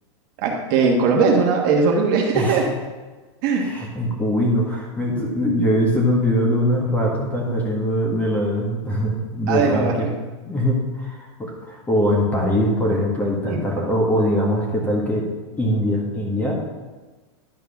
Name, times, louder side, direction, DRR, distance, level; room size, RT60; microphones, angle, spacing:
voice 1, 0.4-2.6 3.4-3.7 9.5-10.1 13.5-13.6, right 4 dB, 40° right, 1 dB, 1.4 m, -19 dB
voice 2, 3.6-10.1 10.5-15.3 15.6-16.5, equal, 10° left, -2 dB, 1.6 m, -22 dB
11.0 x 4.6 x 5.9 m, 1.3 s
supercardioid pair, 165°, 15 cm